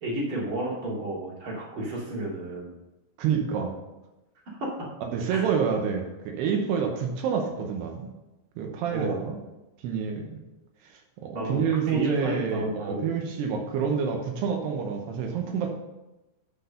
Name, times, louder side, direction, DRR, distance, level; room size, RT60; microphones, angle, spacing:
voice 1, 0.0-2.7 4.5-4.9 5.3-5.4 8.9-9.2 11.3-13.1, right 1 dB, 40° right, -4 dB, 2.3 m, -32 dB
voice 2, 3.2-3.7 5.0-8.1 8.6-9.4 9.8-10.4 10.9-15.7, right 6 dB, 80° right, 3 dB, 2.8 m, -28 dB
10.5 x 4.6 x 5.4 m, 1.0 s
omnidirectional pair, 5.1 m